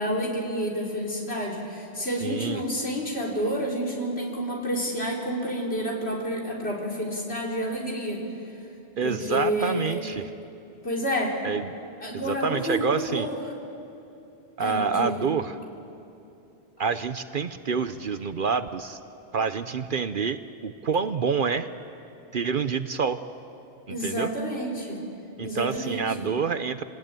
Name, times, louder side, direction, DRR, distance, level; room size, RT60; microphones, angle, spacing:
voice 1, 0.0-8.2 9.0-10.0 10.8-11.4 12.0-13.3 14.6-15.3 23.9-25.0 25.4-26.3, equal, 65° left, -1 dB, 4.2 m, -29 dB
voice 2, 2.2-2.6 9.0-10.3 11.4-11.7 12.1-13.3 14.6-15.6 16.8-19.0 19.3-21.7 22.3-23.2 23.9-24.3 25.4-26.8, right 5 dB, 55° right, 11 dB, 0.8 m, -27 dB
27.0 x 19.0 x 9.0 m, 2.8 s
omnidirectional pair, 1.2 m